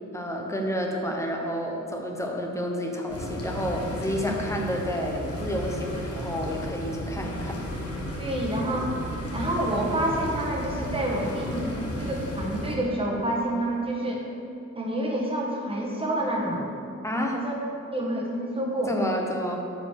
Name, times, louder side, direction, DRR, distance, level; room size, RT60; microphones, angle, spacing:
voice 1, 0.1-7.6 17.0-17.4 18.9-19.6, equal, 10° left, 0 dB, 1.0 m, -30 dB
sound 1, 3.1-12.8, equal, 50° left, 1.5 m, -34 dB
voice 2, 8.2-8.9 9.3-14.2 14.7-16.7 17.3-17.5 17.9-19.0, right 1 dB, 20° right, -3 dB, 1.4 m, -28 dB
9.3 x 5.1 x 6.5 m, 2.6 s
wide cardioid pair, 175°, 30 cm